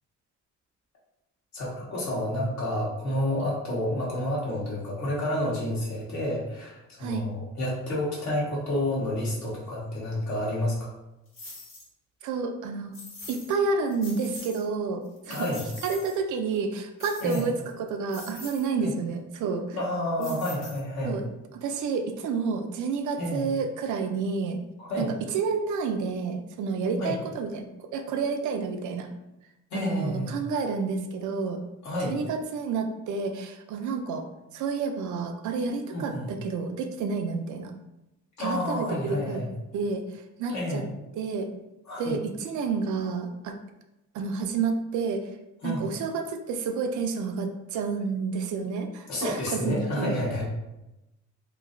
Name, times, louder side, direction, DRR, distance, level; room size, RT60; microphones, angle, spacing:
voice 1, 1.5-10.9 15.3-15.6 17.2-17.5 18.8-18.9 19.7-21.2 23.2-23.5 24.8-25.1 27.0-27.2 29.7-30.3 31.8-32.1 35.9-36.3 38.4-39.5 40.5-40.9 41.9-42.2 45.6-45.9 49.1-50.5, left 1 dB, 65° left, -5 dB, 1.3 m, -29 dB
sound 1, 11.3-11.9 12.9-13.6 13.9-14.6 15.0-16.2 17.0-17.7 18.1-18.7 20.2-21.1, left 2 dB, 40° left, 1.4 m, -43 dB
voice 2, 12.2-13.0 13.3-15.5 15.8-19.8 20.2-20.4 21.0-21.2 21.5-24.6 25.0-29.1 29.7-31.6 32.0-34.3 34.5-37.7 38.4-39.4 39.7-40.8 41.1-41.5 42.0-43.6 44.1-45.3 45.6-50.1, right 4 dB, 75° right, 6 dB, 0.5 m, -30 dB
2.9 x 2.7 x 2.5 m, 0.94 s
cardioid pair, 90°, 30 cm